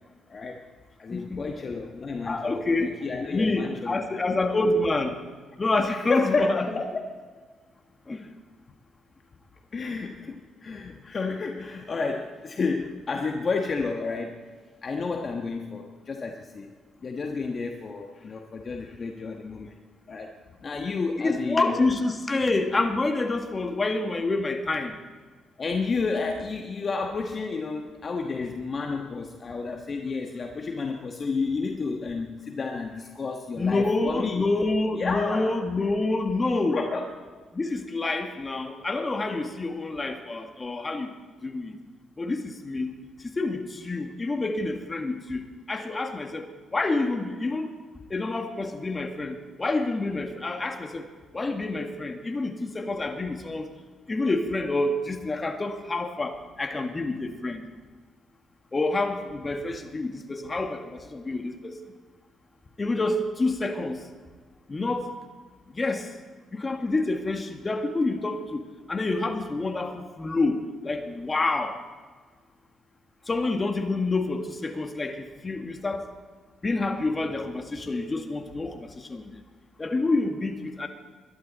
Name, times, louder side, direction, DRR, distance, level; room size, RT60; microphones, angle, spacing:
voice 1, 0.3-0.6 1.0-4.3 4.7-4.8 5.9-7.2 9.7-14.4 14.8-16.7 17.0-19.8 20.1-20.3 20.6-21.9 25.6-34.5 35.0-35.5 36.7-37.1, left 4 dB, 40° left, 3 dB, 1.3 m, -31 dB
voice 2, 2.2-2.9 3.3-5.2 5.6-6.7 8.1-8.3 21.2-24.9 33.6-36.8 37.5-41.1 41.4-41.8 42.2-42.9 43.4-47.7 48.1-51.1 51.3-53.7 54.1-57.6 58.7-61.8 62.8-64.0 64.7-65.1 65.7-66.1 66.5-68.6 68.9-71.8 73.3-76.0 76.6-79.3 79.8-80.9, left 2 dB, 25° left, 5 dB, 1.8 m, -27 dB
21.5 x 12.0 x 4.2 m, 1.5 s
cardioid pair, 90°, 0 cm